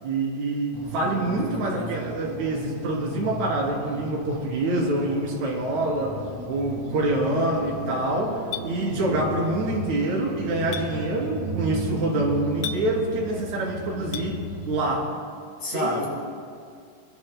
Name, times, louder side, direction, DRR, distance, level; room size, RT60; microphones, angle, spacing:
voice 1, 0.0-6.2 6.5-14.4 14.7-15.1 15.7-16.0, right 2 dB, 45° right, -3 dB, 4.0 m, -26 dB
sound 1, 0.7-15.0, right 2 dB, 75° right, 6.1 m, -36 dB
voice 2, 1.4-1.9 15.6-16.1, left 2 dB, 45° left, -4 dB, 5.4 m, -33 dB
Chink clink, 8.5-8.7 10.7-10.9 12.6-12.8 14.1-14.3, left 9 dB, 80° left, 2.3 m, -32 dB
24.0 x 22.0 x 2.2 m, 2.2 s
omnidirectional pair, 4.9 m